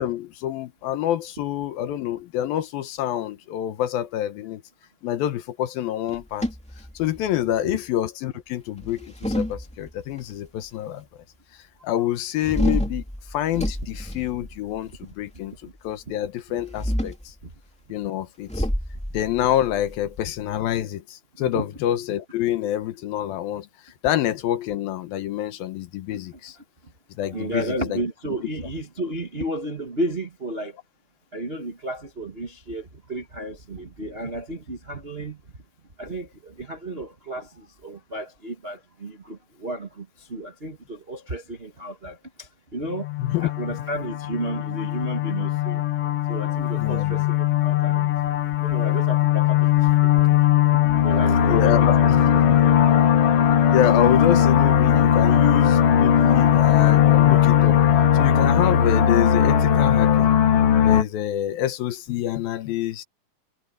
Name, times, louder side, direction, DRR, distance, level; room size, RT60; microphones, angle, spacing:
voice 1, 0.0-4.6 5.0-6.5 7.0-11.0 11.8-13.0 13.3-15.5 15.8-17.3 17.9-18.7 19.1-23.7 24.0-26.6 27.2-28.0 43.2-43.5 46.8-47.3 51.5-52.7 53.7-57.8 58.1-60.3 60.8-63.0, left 12 dB, 75° left, 2.9 m, -27 dB
sound 1, 6.1-7.5 8.8-10.2 12.4-15.0 16.6-17.3 18.5-20.8, equal, ahead, 1.8 m, -29 dB
voice 2, 27.3-30.7 31.3-35.4 36.0-43.1 43.4-45.8 46.3-48.1 48.6-50.4 50.7-52.8, right 1 dB, 90° right, 0.5 m, -33 dB
sound 2, 43.0-61.0, left 9 dB, 55° left, 1.8 m, -19 dB
omnidirectional pair, 4.4 m